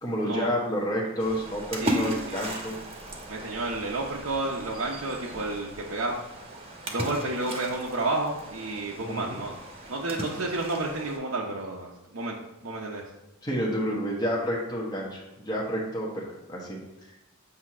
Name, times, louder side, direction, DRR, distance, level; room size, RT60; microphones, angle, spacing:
voice 1, 0.0-2.8 9.0-9.4 13.4-16.2 16.5-16.8, equal, 20° left, -4 dB, 1.2 m, -29 dB
Splash splatter, 1.2-11.2, right 1 dB, 30° right, 1.1 m, -36 dB
voice 2, 1.8-2.4 3.3-6.2 6.9-9.6 9.9-12.4 12.6-13.0, right 2 dB, 75° right, -3 dB, 0.8 m, -31 dB
8.2 x 2.9 x 6.0 m, 0.94 s
head